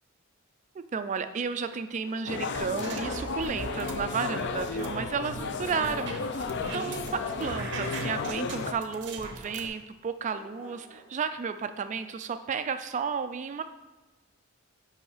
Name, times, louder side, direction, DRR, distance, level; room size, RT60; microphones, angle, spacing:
voice 1, 0.9-6.5 6.7-13.6, right 6 dB, 35° right, 10 dB, 0.3 m, -33 dB
sound 1, 2.0-2.7 3.0-3.1 4.4-4.5 4.7-5.1 7.2-7.9 9.3-10.0 10.3-11.1, right 1 dB, 10° right, 2.0 m, -50 dB
sound 2, 2.3-8.7, left 4 dB, 55° left, 0.4 m, -34 dB
sound 3, 2.5-4.0 4.4-7.1 7.4-9.7, right 4 dB, 55° right, 0.8 m, -39 dB
5.6 x 5.3 x 4.9 m, 1.1 s
head